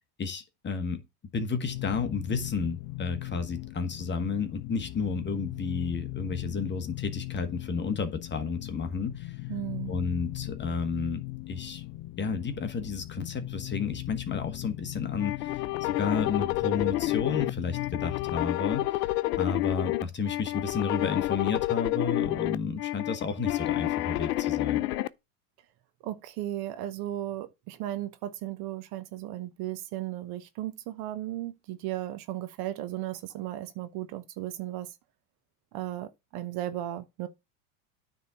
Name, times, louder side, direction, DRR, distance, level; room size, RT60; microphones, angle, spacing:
voice 1, 0.2-1.0 1.3-9.3 9.9-11.8 12.2-24.9, left 5 dB, 25° left, 1.3 m, -32 dB
sound 1, 1.5-18.6, left 19 dB, 45° left, 0.7 m, -39 dB
voice 2, 9.5-9.9 26.0-34.9 35.7-37.3, right 14 dB, 55° right, 1.0 m, -35 dB
sound 2, 15.2-25.1, left 17 dB, 85° left, 0.6 m, -29 dB
9.5 x 3.7 x 5.6 m
hypercardioid pair, 100°, 46 cm